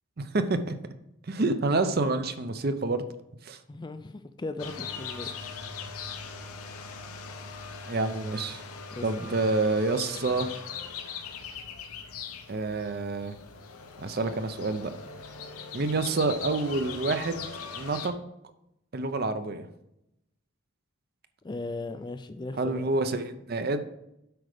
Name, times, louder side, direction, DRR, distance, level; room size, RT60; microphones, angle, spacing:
voice 1, 0.2-0.7 1.3-3.0 3.4-3.6 7.9-8.6 9.0-10.5 12.5-13.4 14.0-14.9 15.7-17.5 17.7-18.1 18.9-19.7 22.5-23.8, right 3 dB, 45° right, 10 dB, 0.6 m, -28 dB
voice 2, 3.7-5.3 8.9-9.0 21.4-22.9, left 2 dB, 20° left, 10 dB, 0.3 m, -37 dB
sound 1, 4.6-18.1, left 5 dB, 90° left, 0.8 m, -40 dB
7.9 x 5.0 x 5.0 m, 0.84 s
head